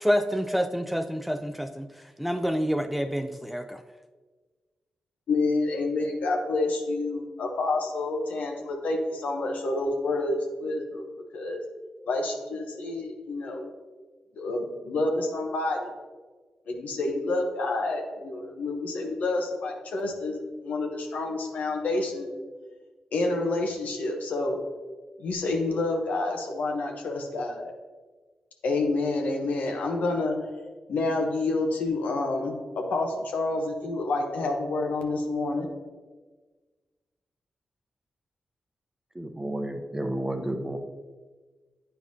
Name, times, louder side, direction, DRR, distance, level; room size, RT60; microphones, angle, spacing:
voice 1, 0.0-1.9 2.2-3.8, equal, 5° right, 7 dB, 0.3 m, -27 dB
voice 2, 5.3-11.6 12.1-13.7 14.3-15.9 16.7-22.3 23.1-24.6 25.2-27.7 28.6-30.4 30.9-35.7, left 2 dB, 80° left, 2 dB, 0.8 m, -28 dB
voice 3, 39.2-40.8, right 1 dB, 20° right, 6 dB, 0.7 m, -31 dB
8.5 x 4.6 x 2.7 m, 1.4 s
supercardioid pair, 40°, 3 cm